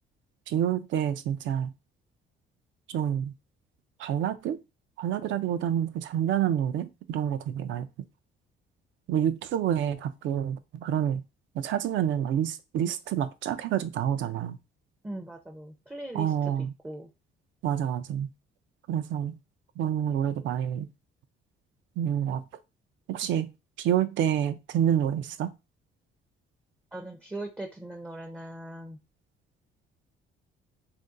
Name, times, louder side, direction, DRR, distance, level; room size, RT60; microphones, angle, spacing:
voice 1, 0.5-1.7 2.9-3.3 4.0-4.6 5.0-7.9 9.1-11.2 11.6-14.6 16.1-16.7 17.6-18.3 18.9-19.4 19.8-20.9 22.0-22.4 23.1-23.5 23.8-25.5, right 10 dB, 70° right, 0.4 m, -28 dB
voice 2, 15.0-16.3 16.8-17.1 26.9-29.0, right 1 dB, 10° right, 0.4 m, -39 dB
2.6 x 2.2 x 3.6 m
cardioid pair, 105°, 21 cm